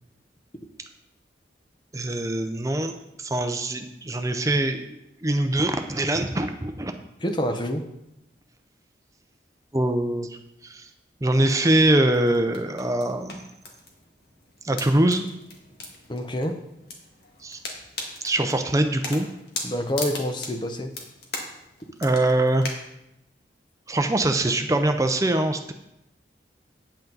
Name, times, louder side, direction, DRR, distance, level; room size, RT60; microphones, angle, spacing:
voice 1, 1.9-6.9 9.7-10.4 10.6-10.9 11.2-13.5 14.6-15.2 17.4-17.6 18.2-19.3 22.0-22.7 23.9-25.7, right 1 dB, 20° right, 6 dB, 0.6 m, -23 dB
voice 2, 7.2-7.9 16.1-16.6 19.6-20.9, equal, 25° left, 6 dB, 0.8 m, -27 dB
sound 1, 11.4-22.7, left 3 dB, 65° left, 1.8 m, -40 dB
8.9 x 8.3 x 3.9 m, 0.85 s
head